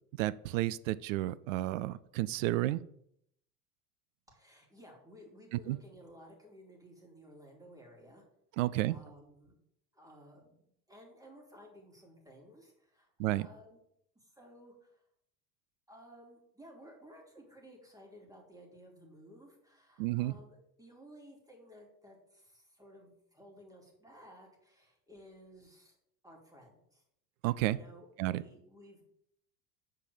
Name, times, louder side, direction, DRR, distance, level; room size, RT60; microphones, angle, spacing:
voice 1, 0.2-2.8 5.7-5.8 8.6-9.0 13.2-13.5 20.0-20.4 27.4-27.8 28.2-28.4, right 16 dB, 60° right, 17 dB, 0.5 m, -31 dB
voice 2, 4.3-8.2 8.6-9.5 9.9-13.1 13.4-13.8 14.1-15.0 15.9-26.0 26.2-27.0 27.6-29.0, equal, 10° right, 0 dB, 3.0 m, -56 dB
6.8 x 4.9 x 6.9 m, 0.73 s
figure-of-eight pair, 80°, 45 cm